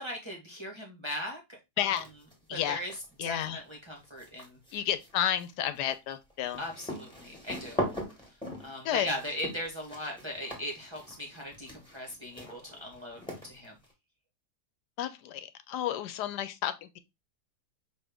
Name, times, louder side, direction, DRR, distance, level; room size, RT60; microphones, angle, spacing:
voice 1, 0.0-1.4 1.8-2.0 2.5-4.6 6.6-7.8 8.3-13.8, equal, 20° right, 0.8 m, -39 dB
sound 1, 1.9-2.4 2.7-13.9, equal, 5° left, 1.5 m, -40 dB
voice 2, 2.5-2.8 3.2-3.6 4.7-6.6 8.8-9.1 15.0-17.0, left 11 dB, 85° left, 1.2 m, -31 dB
5.4 x 2.8 x 3.3 m
omnidirectional pair, 1.7 m